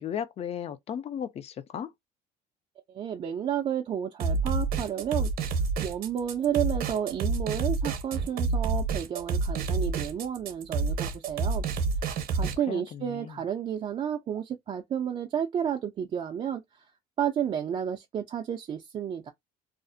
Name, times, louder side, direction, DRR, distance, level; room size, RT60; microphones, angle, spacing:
voice 1, 0.0-1.9 12.7-13.4, left 8 dB, 40° left, 0.4 m, -35 dB
voice 2, 2.9-5.3 5.8-11.6 12.3-16.9 17.2-19.3, right 9 dB, 35° right, 0.4 m, -31 dB
sound 1, 4.2-12.6, right 4 dB, 60° right, 0.7 m, -28 dB
2.4 x 2.0 x 2.5 m
cardioid pair, 110°, 17 cm